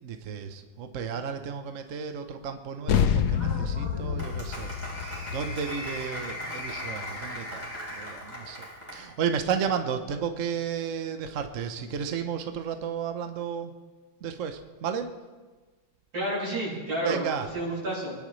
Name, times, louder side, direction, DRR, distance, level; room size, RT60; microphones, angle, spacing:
voice 1, 0.0-13.7 14.2-15.1 17.0-17.5, right 7 dB, 50° right, 7 dB, 1.0 m, -33 dB
sound 1, 2.9-7.7, left 8 dB, 65° left, 1.1 m, -28 dB
Applause, 3.3-9.1, left 1 dB, 5° right, 3.5 m, -38 dB
voice 2, 16.1-18.1, right 1 dB, 85° right, -6 dB, 6.7 m, -30 dB
26.0 x 10.5 x 3.2 m, 1.3 s
omnidirectional pair, 2.2 m